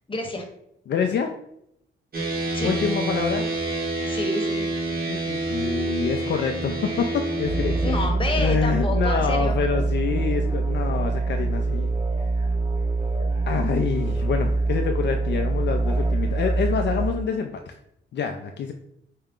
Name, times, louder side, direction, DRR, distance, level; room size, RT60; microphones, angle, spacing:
voice 1, 0.1-0.4 2.5-2.7 4.1-4.6 7.8-9.6, left 2 dB, 25° left, 3 dB, 1.0 m, -29 dB
voice 2, 0.9-1.3 2.6-3.5 5.1-7.9 8.4-11.9 13.5-17.8 18.1-18.7, left 6 dB, 60° left, 4 dB, 0.4 m, -27 dB
sound 1, 2.1-8.1, right 2 dB, 50° right, 1.1 m, -27 dB
sound 2, 7.4-17.1, right 3 dB, 30° right, 1.5 m, -24 dB
4.8 x 2.2 x 3.6 m, 0.77 s
cardioid pair, 80°, 20 cm